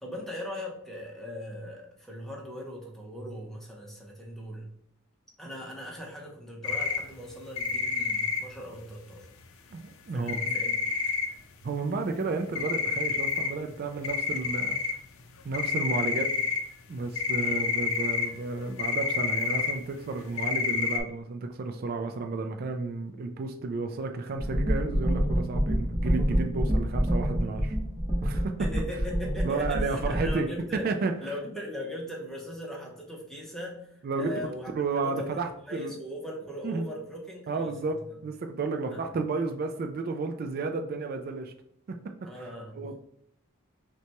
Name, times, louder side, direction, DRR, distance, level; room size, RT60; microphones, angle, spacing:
voice 1, 0.0-4.7 5.4-9.3 10.1-10.8 17.4-17.6 28.6-30.9 31.2-35.4 35.7-37.9 38.9-39.1 42.2-42.8, equal, ahead, -2 dB, 0.7 m, -39 dB
sound 1, 6.6-7.0 7.6-8.4 10.3-11.3 12.5-13.5 13.7-13.8 14.0-14.9 15.5-16.6 17.2-18.3 18.8-19.7 20.4-21.0, left 5 dB, 75° left, 0.5 m, -28 dB
voice 2, 9.7-10.5 11.6-14.8 15.4-16.3 16.9-27.8 28.2-28.5 28.9-29.0 29.4-30.5 30.7-31.1 34.0-34.3 34.7-35.9 36.6-36.9 37.5-41.5 41.9-42.0 42.3-42.5 42.7-43.0, right 3 dB, 45° right, 5 dB, 0.3 m, -32 dB
sound 2, 24.4-30.3, equal, 15° right, 1.1 m, -27 dB
5.7 x 2.2 x 2.9 m, 0.71 s
head